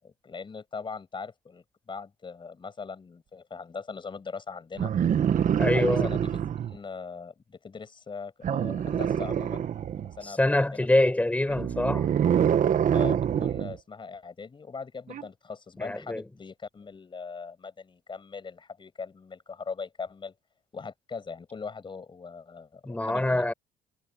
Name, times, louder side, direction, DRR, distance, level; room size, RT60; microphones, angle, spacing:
voice 1, 0.0-4.9 5.7-6.4 6.7-9.6 10.0-11.0 11.5-11.6 12.9-20.3 20.7-23.5, left 5 dB, 30° left, 7.3 m, -40 dB
sound 1, 4.8-6.8 8.4-10.2 11.5-13.8 15.1-15.2, right 9 dB, 50° right, 1.7 m, -26 dB
voice 2, 5.6-6.1 10.2-12.1 15.8-16.2 22.8-23.5, left 1 dB, 10° left, 5.1 m, -25 dB
cardioid pair, 110°, 17 cm